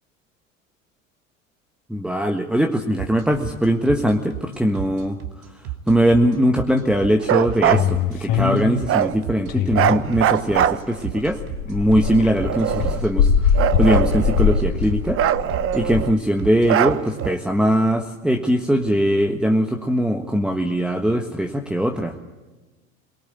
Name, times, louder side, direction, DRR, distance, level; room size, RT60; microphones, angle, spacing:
voice 1, 1.9-5.2 5.9-11.4 11.7-15.2 15.7-22.2, equal, ahead, 2 dB, 1.5 m, -21 dB
sound 1, 3.0-17.3, right 13 dB, 60° right, 2.8 m, -32 dB
Bark, 7.2-7.9 8.9-9.1 9.7-11.2 12.0-13.1 13.5-14.7 15.1-16.2 16.7-17.4, right 10 dB, 35° right, 1.1 m, -22 dB
sound 2, 7.6-10.7 11.0-16.0, left 7 dB, 50° left, 4.2 m, -22 dB
23.0 x 18.5 x 8.2 m, 1.2 s
hypercardioid pair, 95°, 40 cm